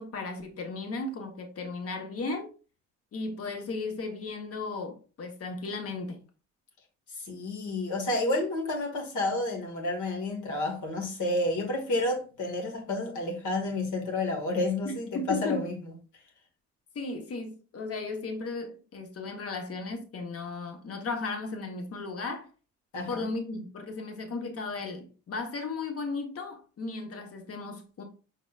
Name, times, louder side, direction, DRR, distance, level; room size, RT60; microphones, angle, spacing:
voice 1, 0.0-2.5 3.1-6.2 14.8-15.7 16.9-22.5 23.1-28.0, left 3 dB, 50° left, 1.3 m, -35 dB
voice 2, 7.1-15.7 22.9-23.3, left 2 dB, 75° left, 1.8 m, -30 dB
5.3 x 4.0 x 2.5 m
cardioid pair, 90°, 30 cm